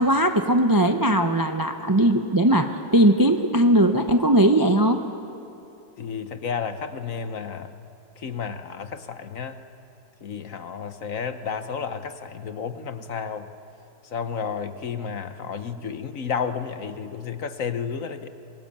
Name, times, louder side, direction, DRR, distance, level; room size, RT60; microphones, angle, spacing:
voice 1, 0.0-5.0, right 1 dB, 20° right, 6 dB, 0.5 m, -19 dB
voice 2, 6.0-7.7 8.2-9.6 10.2-13.5 14.1-18.3, left 6 dB, 55° left, 10 dB, 1.2 m, -31 dB
25.5 x 21.5 x 8.7 m, 2.7 s
omnidirectional pair, 1.8 m